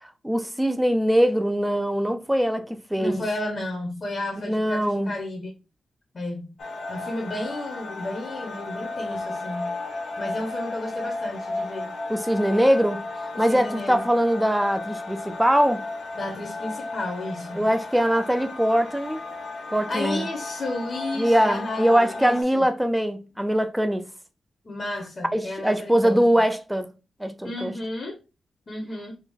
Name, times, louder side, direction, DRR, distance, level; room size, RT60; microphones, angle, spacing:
voice 1, 0.0-3.2 4.5-5.2 12.1-15.8 17.5-19.2 19.7-20.3 21.1-24.1 25.3-26.9 27.2-27.7, equal, 5° right, 0.4 m, -22 dB
voice 2, 3.0-5.5 6.1-6.6 6.9-9.7 10.2-11.9 12.5-12.7 13.3-14.1 16.1-17.7 19.9-22.7 24.6-26.2 27.4-28.2 28.7-29.2, left 1 dB, 35° left, 0.7 m, -32 dB
sound 1, 6.6-22.4, left 2 dB, 70° left, 0.9 m, -34 dB
3.4 x 2.2 x 3.5 m
wide cardioid pair, 140°, 0 cm